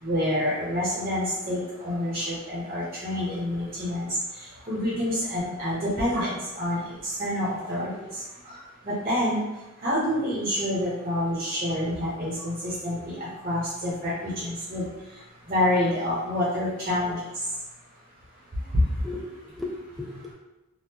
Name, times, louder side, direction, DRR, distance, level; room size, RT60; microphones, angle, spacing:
voice 1, 0.0-9.4 9.8-14.9 15.5-17.2 18.7-18.8, left 1 dB, 30° right, -7 dB, 0.8 m, -28 dB
voice 2, 18.4-18.7 19.0-20.3, left 2 dB, ahead, -2 dB, 0.3 m, -38 dB
3.5 x 2.4 x 2.8 m, 1.0 s
head